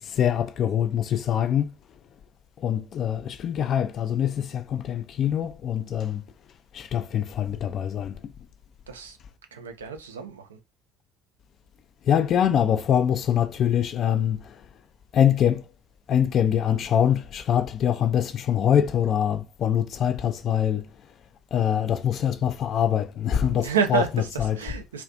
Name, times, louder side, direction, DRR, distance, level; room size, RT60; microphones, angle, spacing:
voice 1, 0.0-1.7 2.6-6.2 6.7-8.3 12.0-14.7 15.1-15.6 16.1-20.9 21.5-24.6, left 9 dB, 50° left, 0.3 m, -24 dB
voice 2, 8.9-9.2 9.5-10.6 23.5-25.0, right 7 dB, 80° right, 0.3 m, -29 dB
2.4 x 2.1 x 2.5 m
figure-of-eight pair, 55°, 0 cm